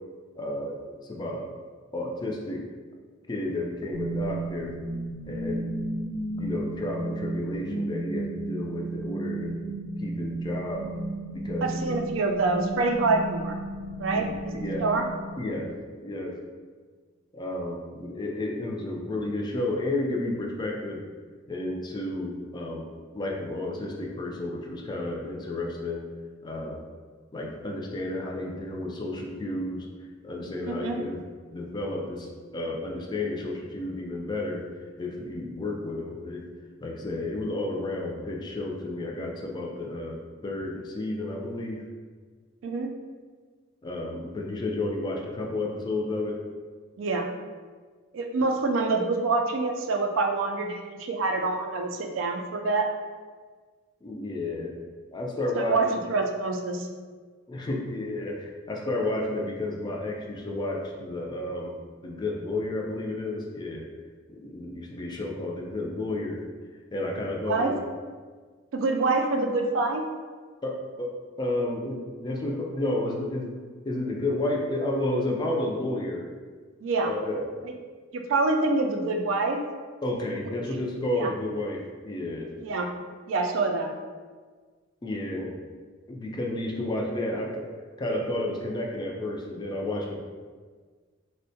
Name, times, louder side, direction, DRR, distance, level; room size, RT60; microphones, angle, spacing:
voice 1, 0.4-1.5 1.9-2.6 3.3-4.7 5.3-6.0 6.4-9.6 10.0-10.8 11.3-11.9 14.1-14.3 14.6-14.9 15.4-15.7 16.0-16.3 17.3-21.0 21.5-22.9 23.1-26.0 26.4-26.8 27.3-31.2 31.5-32.3 32.5-34.6 35.0-36.4 36.8-40.2 40.4-41.8 43.8-46.4 54.0-54.7 55.1-56.0 57.5-61.7 62.0-63.9 64.3-66.4 66.9-67.8 70.6-71.1 71.4-73.5 73.9-76.3 77.0-77.5 80.0-82.5 85.0-85.6 86.1-87.7 88.0-90.2, left 2 dB, 20° left, 0 dB, 0.3 m, -31 dB
sound 1, 3.9-15.9, right 2 dB, 30° right, 0.8 m, -34 dB
voice 2, 11.6-13.5 14.0-15.1 30.7-31.0 42.6-42.9 47.0-47.3 48.1-52.9 55.6-56.9 67.5-67.7 68.7-70.1 76.8-77.1 77.6-77.7 78.1-79.6 81.1-81.3 82.6-82.9 83.3-83.9, right 3 dB, 75° right, 4 dB, 0.3 m, -26 dB
3.5 x 2.1 x 2.7 m, 1.5 s
head